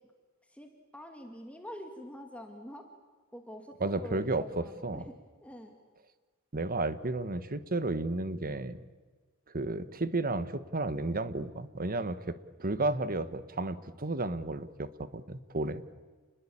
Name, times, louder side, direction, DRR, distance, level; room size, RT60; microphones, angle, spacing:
voice 1, 0.5-2.8 3.3-5.2 5.4-5.7, equal, 5° left, 3 dB, 2.2 m, -46 dB
voice 2, 3.8-5.0 6.5-8.8 9.5-15.8, right 2 dB, 40° right, 13 dB, 1.3 m, -33 dB
29.0 x 21.0 x 8.7 m, 1.4 s
head